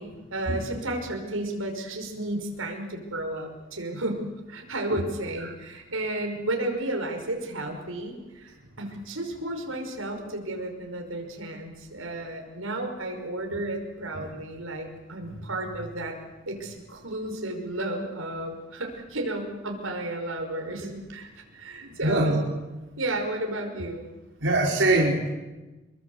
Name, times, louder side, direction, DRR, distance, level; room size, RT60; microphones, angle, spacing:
voice 1, 0.0-16.2 16.5-22.4 23.0-24.0, right 1 dB, 85° right, 3 dB, 5.6 m, -33 dB
voice 2, 21.8-22.4 24.4-25.3, right 2 dB, 65° right, -2 dB, 4.7 m, -22 dB
28.0 x 23.0 x 8.1 m, 1.1 s
head